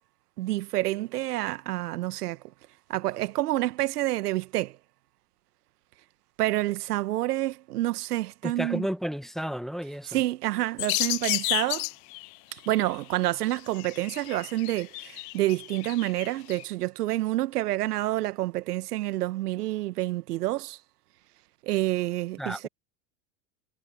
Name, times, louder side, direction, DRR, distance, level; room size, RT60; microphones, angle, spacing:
voice 1, 0.4-2.4 2.9-4.8 6.4-8.9 10.1-11.9 12.5-20.8 21.6-22.7, right 16 dB, 70° right, 1.3 m, -28 dB
voice 2, 8.4-10.2 22.4-22.7, equal, ahead, 1.3 m, -32 dB
sound 1, 10.8-12.3 12.6-13.0 13.5-16.6, left 33 dB, 45° left, 0.4 m, -31 dB
hypercardioid pair, 95°, 47 cm